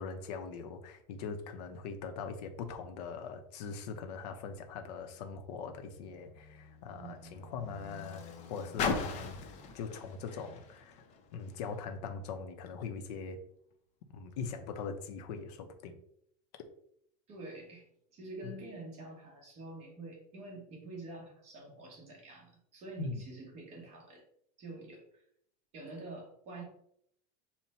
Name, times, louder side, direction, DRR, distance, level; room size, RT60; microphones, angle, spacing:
voice 1, 0.0-11.0 11.3-13.4 14.1-16.0 18.4-18.5 23.0-23.2, left 5 dB, 75° left, 6 dB, 0.7 m, -41 dB
Car, 5.2-11.8 12.6-12.7, left 5 dB, 35° left, 0.6 m, -41 dB
voice 2, 6.9-7.3 17.3-17.9 18.1-24.2 24.6-25.2 25.7-26.6, right 2 dB, 30° right, -1 dB, 1.1 m, -47 dB
5.6 x 2.2 x 4.2 m, 0.70 s
supercardioid pair, 170°, 21 cm